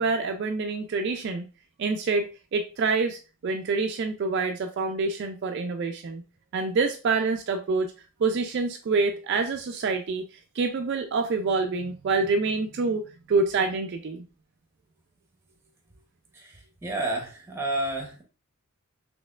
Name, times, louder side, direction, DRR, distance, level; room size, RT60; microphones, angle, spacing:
voice 1, 0.0-1.5 1.8-6.2 6.5-7.9 8.2-10.2 10.6-13.0 13.3-14.2, right 4 dB, 50° right, 5 dB, 0.3 m, -26 dB
voice 2, 16.3-18.2, right 2 dB, 10° right, 2 dB, 0.8 m, -31 dB
4.1 x 3.0 x 2.4 m, 0.33 s
head